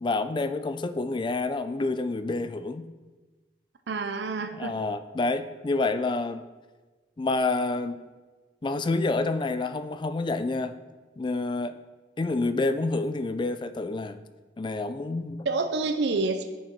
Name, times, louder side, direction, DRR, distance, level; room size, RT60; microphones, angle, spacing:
voice 1, 0.0-2.9 4.5-6.4 7.2-8.0 8.6-10.8 11.2-11.8 12.2-14.2 14.6-15.5, left 3 dB, 25° left, 12 dB, 0.3 m, -28 dB
voice 2, 3.9-4.8 15.4-16.4, right 3 dB, 65° right, 7 dB, 0.5 m, -28 dB
10.5 x 6.2 x 4.5 m, 1.3 s
head